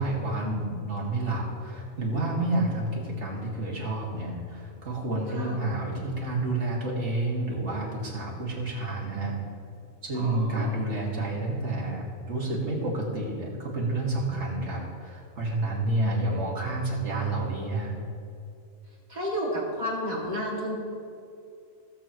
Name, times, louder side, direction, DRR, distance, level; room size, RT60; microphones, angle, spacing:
voice 1, 0.0-9.4 10.0-17.9, right 2 dB, 55° right, -4 dB, 2.4 m, -29 dB
voice 2, 10.1-10.7 19.1-20.8, equal, 30° right, -5 dB, 2.5 m, -31 dB
17.0 x 7.2 x 3.0 m, 2.5 s
omnidirectional pair, 1.4 m